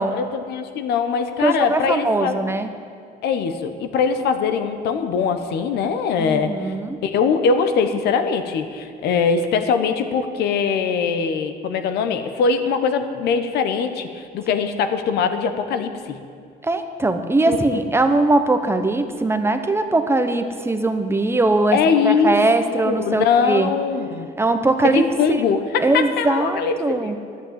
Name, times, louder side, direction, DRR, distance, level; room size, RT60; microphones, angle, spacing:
voice 1, 0.1-2.5 3.2-6.7 7.0-16.2 17.4-17.8 21.7-22.4 22.8-24.3 24.8-26.8 27.0-27.1, left 6 dB, 75° left, 8 dB, 1.1 m, -22 dB
voice 2, 1.4-2.7 6.2-7.0 16.6-21.8 22.0-23.7 24.4-25.0 25.8-27.2, right 2 dB, 15° right, 8 dB, 0.9 m, -20 dB
11.5 x 8.5 x 9.1 m, 2.2 s
cardioid pair, 110°, 17 cm